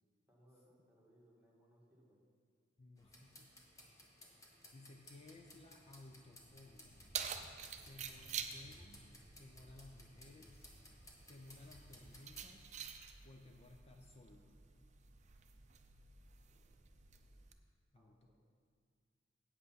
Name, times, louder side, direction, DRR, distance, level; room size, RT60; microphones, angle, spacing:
voice 1, 0.3-2.2 17.9-18.3, equal, 10° right, -4 dB, 1.7 m, -68 dB
voice 2, 2.8-3.5 4.7-7.1 7.9-9.0 9.4-10.7 11.3-12.8 13.2-14.5 17.9-18.3, left 2 dB, 35° left, 2 dB, 0.6 m, -58 dB
sound 1, 3.0-12.5, left 1 dB, 20° left, 1.2 m, -61 dB
Keys jangling, 6.5-17.5, right 7 dB, 40° right, 0.5 m, -50 dB
sound 2, 6.7-12.6, equal, 75° left, 2.0 m, -65 dB
8.3 x 8.0 x 5.7 m, 2.1 s
head